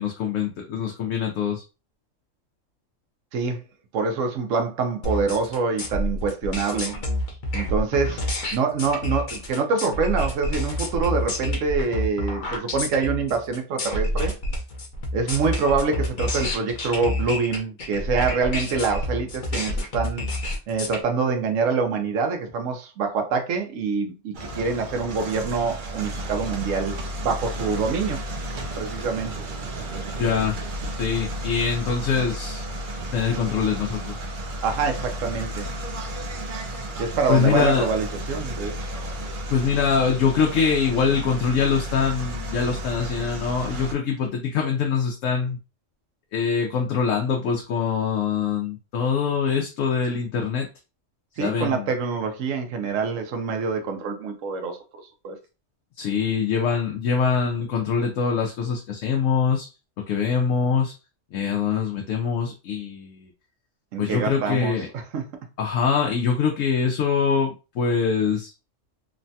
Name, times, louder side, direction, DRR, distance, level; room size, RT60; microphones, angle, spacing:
voice 1, 0.0-1.6 30.2-30.5 30.9-32.8 33.1-34.2 37.3-37.9 39.5-45.6 46.3-50.7 51.4-51.9 56.0-59.7 60.1-60.9 61.3-63.3 64.0-64.9 65.6-68.5, left 6 dB, 85° left, 0.9 m, -24 dB
voice 2, 3.9-7.0 7.5-8.2 8.5-14.3 15.1-20.2 20.7-28.2 28.8-29.3 34.6-35.7 37.0-38.8 51.4-54.8 55.2-55.4 63.9-64.7 65.1-65.3, right 5 dB, 85° right, 1.0 m, -25 dB
sound 1, 5.0-21.0, left 1 dB, 50° left, 0.7 m, -28 dB
sound 2, 24.3-43.9, right 1 dB, 50° right, 0.7 m, -33 dB
3.2 x 2.2 x 2.6 m
omnidirectional pair, 1.3 m